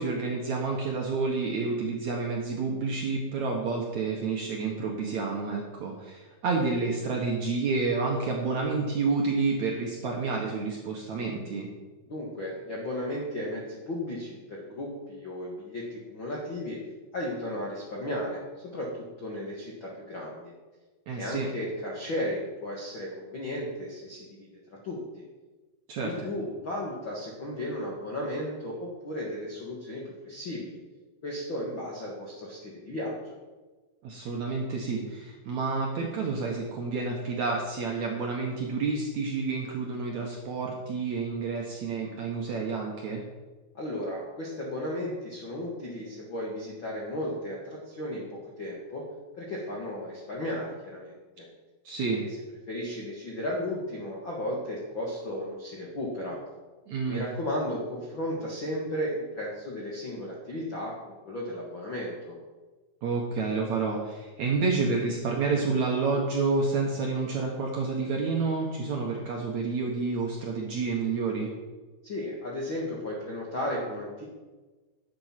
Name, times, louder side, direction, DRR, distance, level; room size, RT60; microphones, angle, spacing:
voice 1, 0.0-11.7 21.1-21.5 25.9-26.3 34.0-43.2 51.8-52.2 56.9-57.2 63.0-71.5, right 4 dB, 65° right, 0 dB, 1.9 m, -29 dB
voice 2, 12.1-16.8 17.1-18.4 18.7-20.5 21.2-24.5 24.8-25.0 26.0-30.7 31.2-33.4 43.7-49.0 49.4-51.5 52.1-52.3 52.7-56.4 57.1-62.3 72.0-74.2, left 1 dB, 55° left, -3 dB, 1.3 m, -34 dB
11.0 x 8.0 x 5.8 m, 1.3 s
omnidirectional pair, 4.8 m